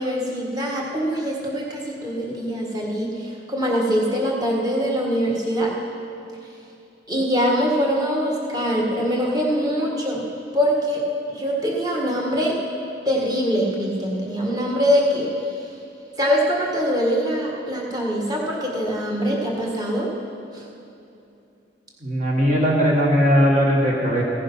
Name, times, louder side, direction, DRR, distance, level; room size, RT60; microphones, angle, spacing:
voice 1, 0.0-5.7 7.1-10.2 10.5-11.0 11.3-12.6 13.0-15.3 16.2-20.1 20.5-20.6, equal, 20° right, -2 dB, 1.7 m, -23 dB
voice 2, 22.0-24.2, equal, 40° right, -3 dB, 1.4 m, -18 dB
16.0 x 10.0 x 5.6 m, 2.7 s
head